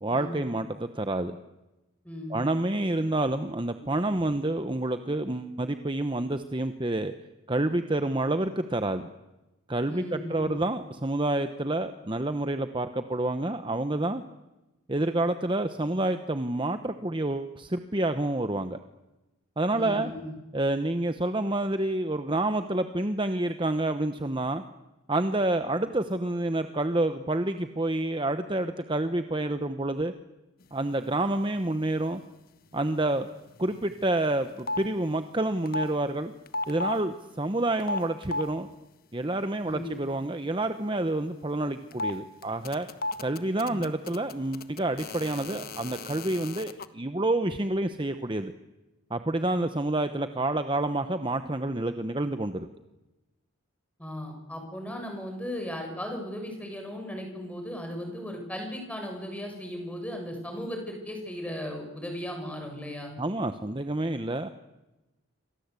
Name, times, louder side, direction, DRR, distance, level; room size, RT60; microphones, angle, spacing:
voice 1, 0.0-1.4 2.3-7.1 7.5-9.1 9.7-14.2 14.9-18.8 19.6-20.1 20.5-24.6 25.1-30.1 30.7-32.2 32.7-33.3 33.6-36.3 36.7-38.7 39.1-42.9 43.2-48.5 49.1-52.7 63.2-64.5, right 2 dB, 20° right, 9 dB, 0.9 m, -28 dB
voice 2, 2.0-2.4 9.9-10.6 19.7-20.4 39.6-40.0 43.7-43.8 54.0-63.1, left 1 dB, 5° left, 3 dB, 7.0 m, -36 dB
sound 1, 33.6-34.1 34.3-34.9 35.7-35.9 36.5-37.0 37.8-38.5 41.9-42.1 42.4-46.8, left 2 dB, 45° left, 1.2 m, -33 dB
28.0 x 25.5 x 8.4 m, 1.0 s
head